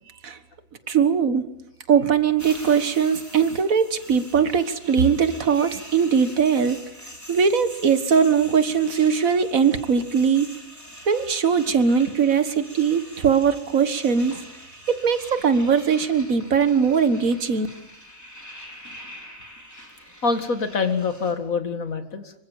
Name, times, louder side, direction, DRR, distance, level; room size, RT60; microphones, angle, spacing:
voice 1, 0.9-1.5 1.9-6.8 7.3-10.5 11.1-14.3 14.9-17.7, right 6 dB, 85° right, 11 dB, 2.0 m, -20 dB
sound 1, 2.4-21.3, equal, 10° left, 4.7 m, -44 dB
voice 2, 20.2-22.3, left 4 dB, 90° left, 8 dB, 2.4 m, -25 dB
26.0 x 24.0 x 7.3 m, 0.79 s
omnidirectional pair, 1.4 m